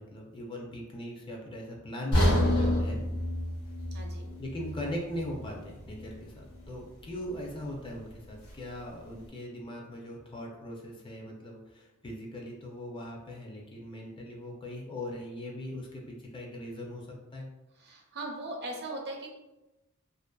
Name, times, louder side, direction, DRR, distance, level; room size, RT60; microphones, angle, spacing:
voice 1, 0.0-3.0 4.4-17.5, left 1 dB, 25° left, -1 dB, 0.4 m, -40 dB
sound 1, 2.1-6.2 6.5-6.7 7.3-7.4, left 1 dB, 90° left, 0.9 m, -29 dB
voice 2, 3.9-4.3 17.8-19.3, right 2 dB, 50° right, 0 dB, 0.5 m, -39 dB
2.5 x 2.4 x 2.2 m, 1.0 s
head